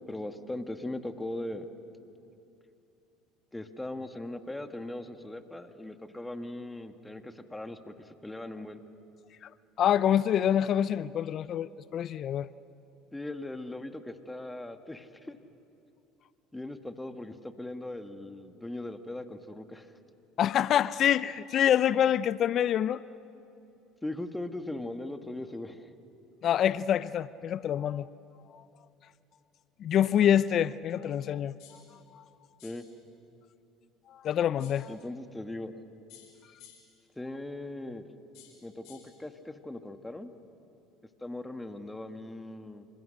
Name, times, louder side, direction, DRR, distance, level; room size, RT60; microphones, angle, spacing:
voice 1, 0.1-1.7 3.5-8.8 13.1-15.4 16.5-19.9 24.0-25.9 26.4-26.5 32.6-32.8 34.9-35.8 37.2-38.1 38.6-40.3 41.2-42.9, left 1 dB, 10° left, 7 dB, 1.9 m, -39 dB
voice 2, 9.8-12.5 20.4-23.0 26.4-28.1 29.8-31.5 32.1-32.2 34.1-34.9, left 10 dB, 50° left, 18 dB, 0.5 m, -26 dB
sound 1, 31.6-31.9 32.6-32.9 34.6-34.9 36.1-37.0 38.3-39.2, left 8 dB, 65° left, 5.0 m, -55 dB
28.0 x 26.5 x 6.6 m, 2.8 s
hypercardioid pair, 70°, 0 cm